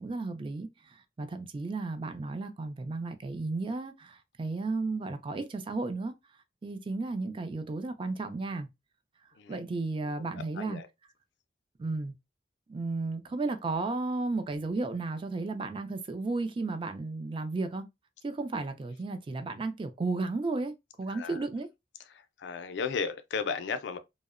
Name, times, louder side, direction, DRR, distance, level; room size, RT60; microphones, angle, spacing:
voice 1, 0.0-6.1 6.6-8.7 9.5-10.8 11.8-12.1 12.7-17.8 18.2-21.7, right 3 dB, 30° right, 0.3 m, -34 dB
voice 2, 10.2-10.9 21.1-21.4 22.1-24.0, left 5 dB, 85° left, 0.4 m, -35 dB
2.6 x 2.0 x 2.4 m
head